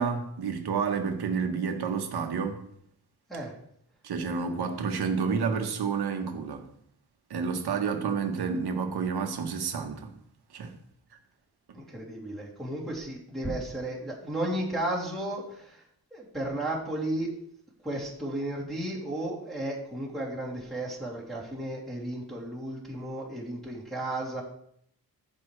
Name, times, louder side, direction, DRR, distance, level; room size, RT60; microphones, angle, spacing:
voice 1, 0.0-2.6 4.0-6.6 7.3-10.1 10.5-10.7, right 5 dB, 80° right, 1.4 m, -30 dB
voice 2, 11.7-15.8 16.1-17.3 17.8-24.4, right 1 dB, ahead, 3.0 m, -34 dB
15.0 x 5.2 x 3.3 m
wide cardioid pair, 110°, 38 cm